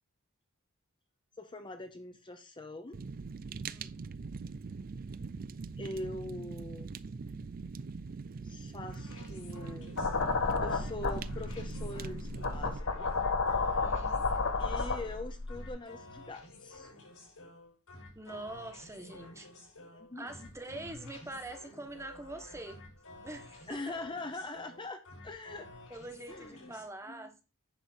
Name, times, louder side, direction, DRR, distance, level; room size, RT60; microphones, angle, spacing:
voice 1, 1.4-3.0 5.8-6.9 8.4-10.0 10.6-13.1 14.6-16.9 19.9-20.5 23.7-25.7 26.3-26.8 27.1-27.3, left 2 dB, 20° left, 7 dB, 0.8 m, -43 dB
Fire, 2.9-12.8, right 4 dB, 40° right, 0.4 m, -42 dB
voice 2, 3.7-4.0 13.7-14.3 18.1-19.5 20.1-22.8 23.2-23.8 25.9-27.4, right 2 dB, 15° right, 6 dB, 1.2 m, -44 dB
sound 1, 8.9-26.9, left 2 dB, 80° left, 6.0 m, -52 dB
sound 2, 10.0-15.7, left 4 dB, 60° left, 1.2 m, -32 dB
10.0 x 3.6 x 6.3 m, 0.29 s
head